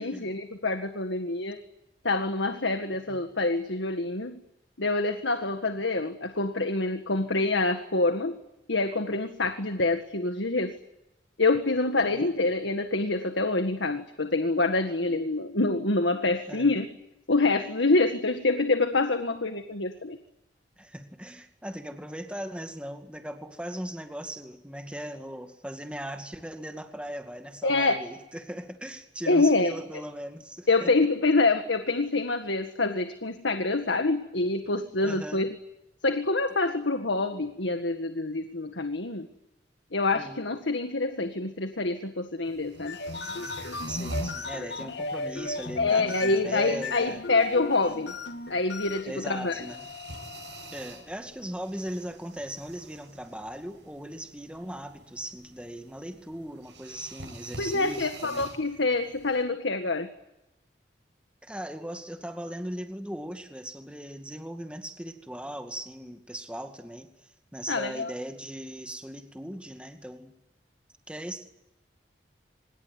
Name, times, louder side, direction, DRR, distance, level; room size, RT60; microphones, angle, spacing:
voice 1, 0.0-1.6 2.0-4.4 4.8-8.4 8.7-10.8 11.4-16.9 17.3-20.2 27.6-28.0 29.3-29.7 30.7-35.5 36.0-39.3 39.9-43.0 45.8-48.2 48.5-49.6 57.6-60.1 67.7-68.1, left 3 dB, 90° left, 7 dB, 1.8 m, -26 dB
voice 2, 12.0-12.3 16.5-16.7 20.8-30.9 35.0-35.5 40.1-40.4 43.9-47.2 49.1-49.9 50.7-58.5 61.4-67.1 67.5-70.3 71.1-71.4, equal, 5° right, 5 dB, 2.2 m, -38 dB
sound 1, 42.4-59.4, right 2 dB, 75° right, 7.7 m, -46 dB
sound 2, 42.7-51.0, left 2 dB, 70° left, 1.7 m, -36 dB
25.5 x 21.5 x 9.6 m, 0.90 s
head